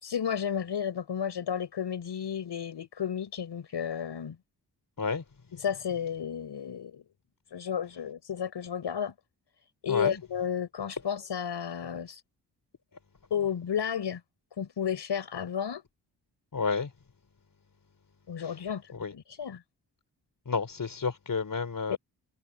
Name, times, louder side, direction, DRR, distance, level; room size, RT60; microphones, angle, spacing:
voice 1, 0.0-4.4 5.5-7.0 7.5-9.1 9.8-12.2 13.3-14.2 14.6-15.8 18.3-19.6 21.9-22.0, left 8 dB, 80° left, 5.6 m, -32 dB
voice 2, 9.9-10.2 16.5-16.9 18.9-19.1 20.5-22.0, left 4 dB, 50° left, 3.8 m, -30 dB
cardioid pair, 75°, 41 cm